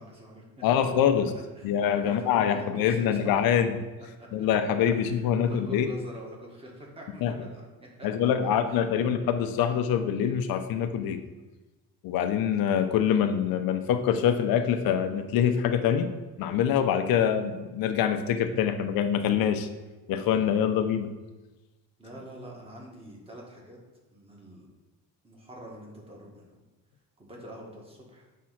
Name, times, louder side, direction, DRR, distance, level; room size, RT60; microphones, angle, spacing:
voice 1, 0.0-0.6 1.3-3.8 4.2-4.5 4.9-8.1 8.4-9.0 22.0-23.8 24.1-24.7 25.2-26.5 27.2-28.3, equal, 15° right, -2 dB, 1.6 m, -46 dB
voice 2, 0.6-1.3 1.6-3.8 4.3-5.9 7.2-7.3 8.0-11.2 12.0-16.1 16.4-19.7 20.1-21.1, left 8 dB, 75° left, 8 dB, 0.8 m, -25 dB
7.5 x 3.7 x 5.8 m, 1.1 s
cardioid pair, 135°, 36 cm